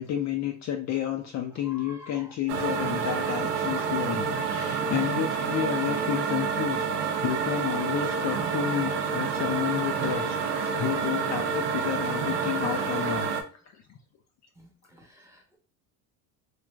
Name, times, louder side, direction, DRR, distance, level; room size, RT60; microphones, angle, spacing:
voice 1, 0.0-6.9 7.2-13.3 13.7-13.8, left 10 dB, 45° left, 0.4 m, -31 dB
voice 2, 1.7-2.2 15.2-15.6, left 1 dB, 5° right, 0.7 m, -48 dB
sound 1, 2.5-13.4, right 5 dB, 75° right, 0.6 m, -28 dB
3.2 x 2.4 x 2.3 m
cardioid pair, 115°, 42 cm